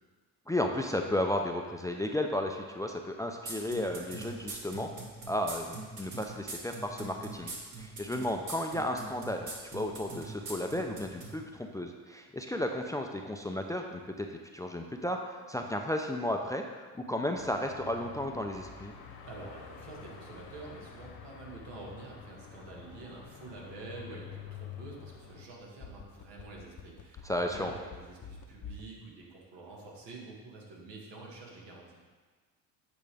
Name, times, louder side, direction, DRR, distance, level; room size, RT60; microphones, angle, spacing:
voice 1, 0.5-4.9 5.3-7.5 7.8-14.3 14.5-18.9 27.2-27.7, left 1 dB, 10° left, 3 dB, 0.4 m, -33 dB
sound 1, 3.5-11.3, right 3 dB, 45° right, 1.8 m, -41 dB
Car passing by / Traffic noise roadway noise / Engine, 17.3-25.5, left 7 dB, 65° left, 1.2 m, -48 dB
voice 2, 19.3-32.0, right 3 dB, 80° right, -2 dB, 1.8 m, -47 dB
sound 2, 25.5-28.9 29.2-29.3, left 6 dB, 45° left, 0.7 m, -46 dB
8.8 x 5.0 x 3.5 m, 1.5 s
supercardioid pair, 90°, 41 cm